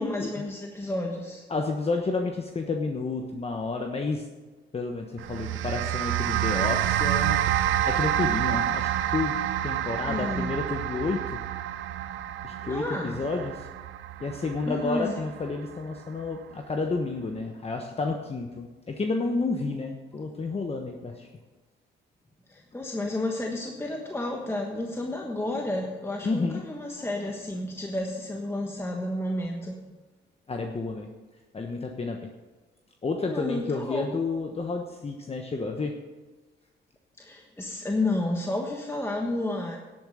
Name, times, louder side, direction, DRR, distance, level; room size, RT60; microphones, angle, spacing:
voice 1, 0.0-1.5 10.1-10.6 12.6-13.2 14.6-15.2 22.5-29.8 33.3-34.2 37.2-39.8, left 1 dB, 10° left, 1 dB, 1.3 m, -31 dB
voice 2, 1.5-4.2 4.7-7.6 7.9-11.4 12.4-13.7 14.2-21.3 26.2-26.6 30.5-31.1 31.5-32.2 33.0-35.9, left 3 dB, 30° left, 3 dB, 1.1 m, -30 dB
sound 1, 5.2-15.7, right 12 dB, 80° right, 0.6 m, -28 dB
11.0 x 8.6 x 6.4 m, 1.2 s
cardioid pair, 90°, 20 cm